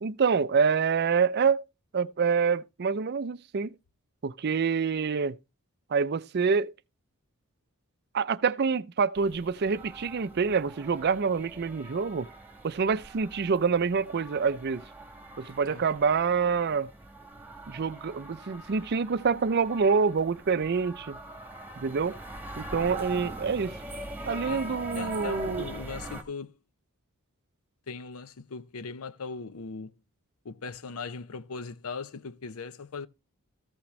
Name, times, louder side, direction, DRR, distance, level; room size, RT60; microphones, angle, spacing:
voice 1, 0.0-1.6 1.9-3.7 4.2-5.4 5.9-6.7 8.1-12.3 12.6-14.8 15.4-16.9 17.7-21.2 21.8-22.2 22.6-23.8 24.2-25.7, right 5 dB, 50° right, 0.5 m, -26 dB
sound 1, 9.2-26.2, right 2 dB, 10° right, 1.4 m, -42 dB
voice 2, 24.9-26.5 27.9-29.9 30.4-33.1, left 4 dB, 75° left, 0.7 m, -39 dB
14.5 x 5.9 x 3.1 m
head